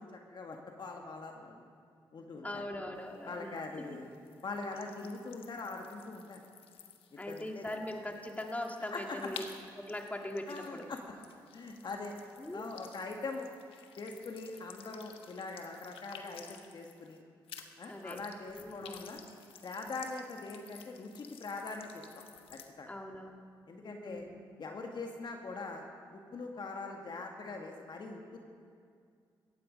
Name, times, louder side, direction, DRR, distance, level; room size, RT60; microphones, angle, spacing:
voice 1, 0.0-1.6 2.1-2.6 3.3-4.1 4.4-6.4 7.1-7.6 8.9-9.3 10.5-11.0 11.5-12.1 12.5-13.5 14.0-17.2 17.8-19.2 19.6-22.0 22.5-23.0 23.7-24.2 24.6-25.8 26.1-28.4, left 3 dB, 55° left, 2 dB, 1.8 m, -42 dB
voice 2, 2.4-4.0 7.2-9.5 9.8-10.9 12.4-12.7 17.9-18.2 18.5-19.2 22.9-23.5 23.8-24.4, left 1 dB, 15° left, 2 dB, 2.2 m, -41 dB
sound 1, 3.0-17.2 17.5-22.7, left 7 dB, 80° left, 1.1 m, -54 dB
17.5 x 14.5 x 5.3 m, 2.2 s
supercardioid pair, 60°, 9 cm